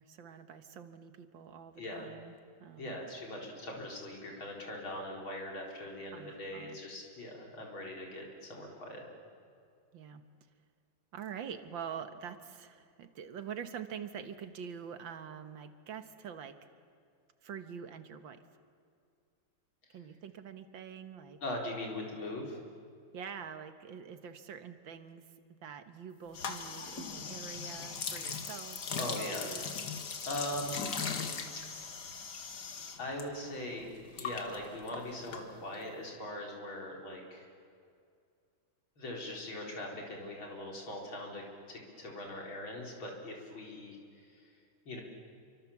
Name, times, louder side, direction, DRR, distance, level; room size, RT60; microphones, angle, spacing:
voice 1, 0.0-3.0 6.1-6.8 9.9-10.2 11.1-16.6 17.4-18.4 19.9-21.4 23.1-25.2 25.6-29.7, right 7 dB, 70° right, 9 dB, 2.0 m, -45 dB
voice 2, 1.8-2.1 2.8-9.0 21.4-22.6 29.0-29.5 30.2-31.0 33.0-37.5 39.0-44.0 44.3-44.4 44.9-45.0, left 1 dB, 80° left, 0 dB, 5.0 m, -41 dB
sound 1, 26.3-33.2 33.5-35.9, left 5 dB, 55° left, 2.1 m, -39 dB
29.0 x 24.5 x 7.3 m, 2.3 s
omnidirectional pair, 2.2 m